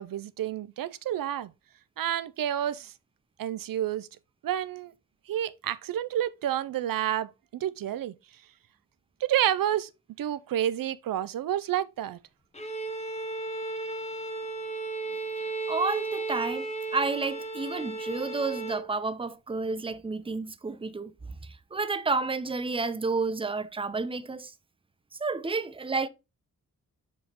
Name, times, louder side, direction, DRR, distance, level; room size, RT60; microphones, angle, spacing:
voice 1, 0.0-1.5 2.0-2.9 3.4-4.1 4.4-4.9 5.3-8.1 9.2-9.9 10.2-12.2, right 11 dB, 80° right, 0.5 m, -29 dB
Bowed string instrument, 12.5-18.9, right 3 dB, 20° left, 1.2 m, -34 dB
voice 2, 15.4-21.1 21.4-24.5 25.2-26.1, right 3 dB, 15° right, 0.6 m, -31 dB
7.3 x 4.9 x 2.9 m
wide cardioid pair, 90°, 34 cm